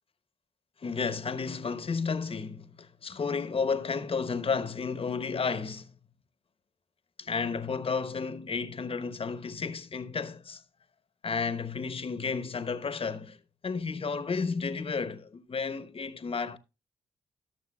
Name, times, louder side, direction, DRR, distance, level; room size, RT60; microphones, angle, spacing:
voice 1, 0.8-5.9 7.2-10.6 11.2-13.4 13.6-16.6, left 5 dB, 45° left, 1.0 m, -32 dB
18.0 x 6.7 x 2.3 m
supercardioid pair, 45°, 13 cm